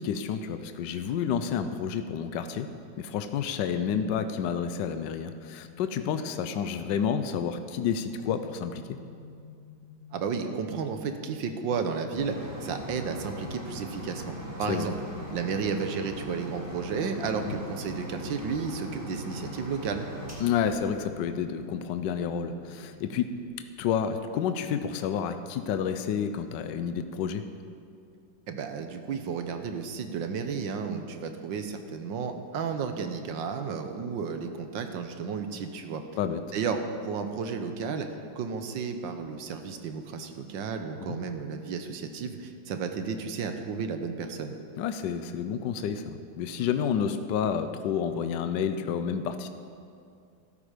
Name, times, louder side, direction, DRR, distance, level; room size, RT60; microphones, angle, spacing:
voice 1, 0.0-2.7 3.0-9.0 14.7-14.9 17.4-17.6 20.4-23.4 23.8-27.4 36.2-36.4 41.1-41.2 44.8-49.5, left 7 dB, 70° left, 9 dB, 1.2 m, -30 dB
sound 1, 8.4-22.9, left 6 dB, 45° left, 1.1 m, -50 dB
voice 2, 10.1-12.3 12.6-14.9 15.3-20.1 28.5-36.0 36.5-38.1 38.3-44.5, right 5 dB, 75° right, 6 dB, 1.6 m, -33 dB
sound 2, 12.1-21.6 22.3-22.4 22.8-22.9, right 1 dB, 10° right, 2.0 m, -40 dB
13.5 x 13.0 x 5.0 m, 2.3 s
omnidirectional pair, 2.1 m